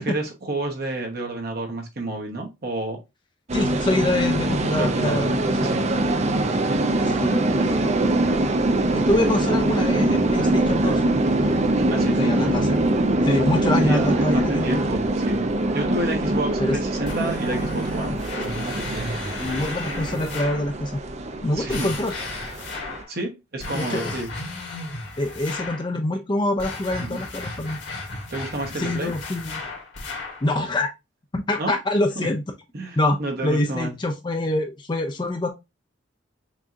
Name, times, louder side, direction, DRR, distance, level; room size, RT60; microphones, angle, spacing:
voice 1, 0.0-3.0 4.7-5.3 5.6-5.9 6.3-6.6 11.9-12.2 13.8-18.2 18.6-19.1 21.5-21.9 23.1-24.3 27.0-27.2 28.3-29.1 31.6-31.7 32.2-32.3 32.7-33.9, right 2 dB, 55° right, 1.1 m, -30 dB
voice 2, 3.5-5.6 7.0-7.9 8.9-11.0 11.4-11.5 11.9-12.8 13.2-14.7 16.6-16.8 18.4-18.6 19.4-20.9 21.4-22.2 23.7-24.1 25.2-27.8 28.7-29.6 30.4-30.9 31.3-32.4 33.0-33.2 33.4-35.5, left 1 dB, 25° left, 0.5 m, -25 dB
sound 1, 3.5-23.0, right 1 dB, 35° right, 0.5 m, -23 dB
sound 2, 17.0-20.7 21.7-23.1 23.6-25.9 26.6-30.5, left 2 dB, 70° left, 1.6 m, -34 dB
6.0 x 2.8 x 2.5 m
head